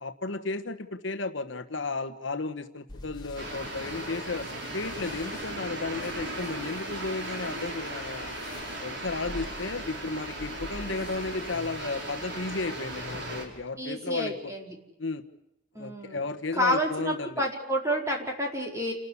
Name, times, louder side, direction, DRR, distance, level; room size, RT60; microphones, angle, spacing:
voice 1, 0.0-4.5 4.7-8.3 8.8-14.5 15.0-15.2 15.8-17.4, left 3 dB, 65° left, 8 dB, 1.3 m, -34 dB
sound 1, 2.9-13.6, left 1 dB, 20° left, 2.7 m, -46 dB
sound 2, 3.4-13.5, right 1 dB, 60° right, 5.5 m, -37 dB
voice 2, 13.8-14.8 15.7-16.3 16.5-18.9, equal, 15° right, 1 dB, 4.6 m, -29 dB
29.0 x 13.0 x 9.7 m, 0.91 s
head